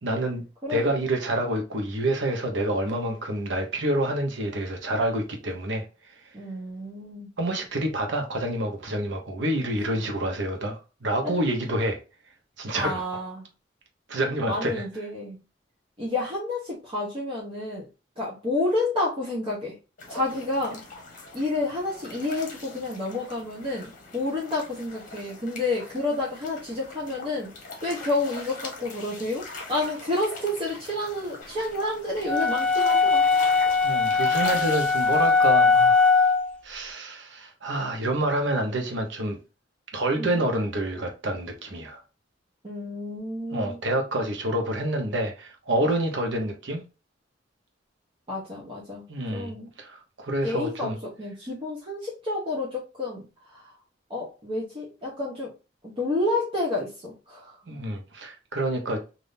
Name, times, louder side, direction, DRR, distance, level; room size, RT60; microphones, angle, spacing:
voice 1, 0.0-0.4 0.7-5.8 7.4-12.0 12.6-13.1 14.1-14.8 33.8-36.1 36.6-39.4 39.9-42.0 43.5-46.8 49.1-51.0 57.7-59.0, right 1 dB, 70° right, 0.9 m, -28 dB
voice 2, 0.6-1.0 6.3-7.3 11.2-11.3 12.7-13.4 14.5-15.4 16.0-17.9 18.2-19.7 20.1-20.8 21.3-27.5 27.8-33.3 40.2-40.4 42.6-43.8 48.3-49.0 49.3-49.7 50.4-53.2 53.5-53.7 54.1-55.5 55.8-57.5, left 2 dB, 30° right, 0.9 m, -30 dB
sound 1, 20.0-35.5, left 3 dB, 45° left, 1.0 m, -42 dB
sound 2, 32.2-36.5, left 4 dB, 5° left, 0.5 m, -20 dB
3.5 x 2.6 x 2.6 m
head